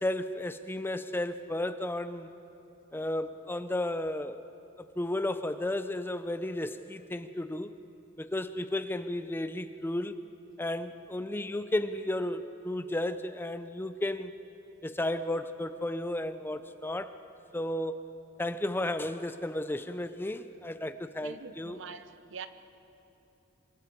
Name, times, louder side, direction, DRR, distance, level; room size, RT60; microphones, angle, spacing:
voice 1, 0.0-2.3 2.9-4.4 4.8-7.7 8.2-10.2 10.6-14.3 14.8-17.2 17.5-18.0 18.4-21.8, left 1 dB, 10° left, 0.5 m, -33 dB
voice 2, 21.2-22.5, right 5 dB, 65° right, 0.8 m, -44 dB
26.5 x 24.0 x 4.6 m
head